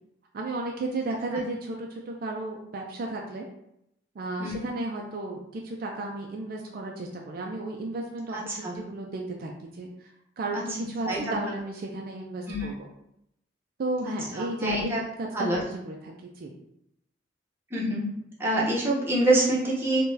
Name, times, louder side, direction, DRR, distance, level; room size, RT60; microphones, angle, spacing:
voice 1, 0.3-3.4 4.2-12.9 13.8-16.5, right 2 dB, 55° right, 0 dB, 0.4 m, -34 dB
voice 2, 4.4-4.7 8.3-8.8 10.5-10.6 11.1-11.4 12.5-12.7 14.0-15.0 15.3-15.6 17.7-18.1 18.4-20.1, right 1 dB, 15° right, -6 dB, 0.8 m, -26 dB
3.7 x 2.3 x 2.6 m, 0.79 s
head